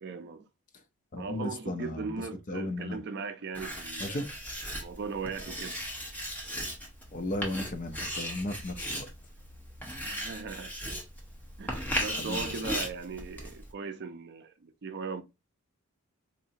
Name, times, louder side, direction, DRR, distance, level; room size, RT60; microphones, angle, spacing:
voice 1, 0.0-0.5 1.2-4.2 4.8-5.8 10.0-10.7 11.6-15.2, right 4 dB, 50° right, 0.4 m, -38 dB
voice 2, 1.1-2.1 2.5-3.0 4.0-4.3 7.1-9.1 12.2-12.5, left 1 dB, 35° left, 0.6 m, -35 dB
Writing, 3.5-13.7, equal, 10° left, 0.9 m, -37 dB
4.0 x 2.7 x 2.7 m
head